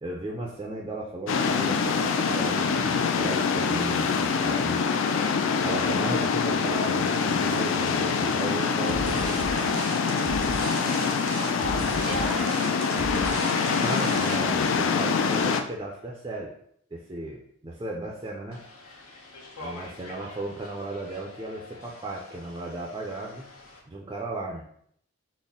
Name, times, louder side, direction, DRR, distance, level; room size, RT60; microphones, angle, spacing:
voice 1, 0.0-4.8 5.6-9.3 13.8-16.5 16.9-17.4 17.6-18.6 19.6-23.4 23.9-24.6, right 2 dB, 20° right, -2 dB, 0.4 m, -35 dB
Ano Nuevo Pacific Coast Waves, 1.3-15.6, left 5 dB, 60° left, 0.3 m, -25 dB
sound 1, 8.9-14.7, right 4 dB, 75° right, 0.5 m, -36 dB
voice 2, 11.4-13.4, left 1 dB, 25° left, -2 dB, 0.6 m, -36 dB
sound 2, 18.5-23.8, left 2 dB, 80° left, 0.9 m, -46 dB
4.0 x 2.0 x 3.6 m, 0.67 s
head